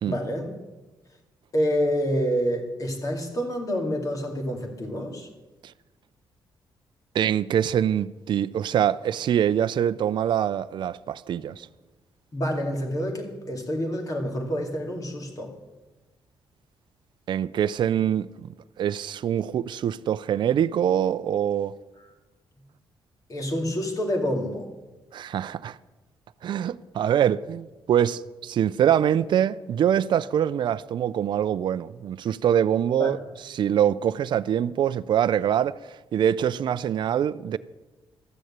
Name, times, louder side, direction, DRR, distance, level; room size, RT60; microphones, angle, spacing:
voice 1, 0.1-0.5 1.5-5.3 12.3-15.6 23.3-24.7 33.0-33.1, equal, 40° left, 2.4 m, -27 dB
voice 2, 7.1-11.7 17.3-18.5 18.8-21.7 25.1-25.8 26.4-33.2 33.4-37.6, right 9 dB, 60° right, 0.4 m, -24 dB
13.0 x 6.5 x 8.7 m
cardioid pair, 90°, 9 cm